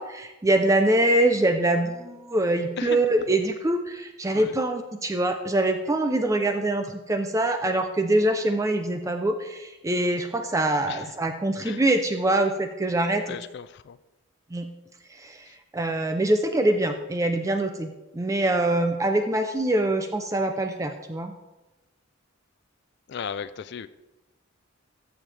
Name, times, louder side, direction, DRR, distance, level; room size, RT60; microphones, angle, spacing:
voice 1, 0.0-13.4 14.5-14.7 15.2-15.4 15.7-21.3, right 1 dB, 15° right, 6 dB, 0.4 m, -24 dB
voice 2, 13.2-14.0 23.1-23.9, left 7 dB, 55° left, 13 dB, 0.4 m, -36 dB
13.5 x 7.1 x 3.3 m, 1.1 s
head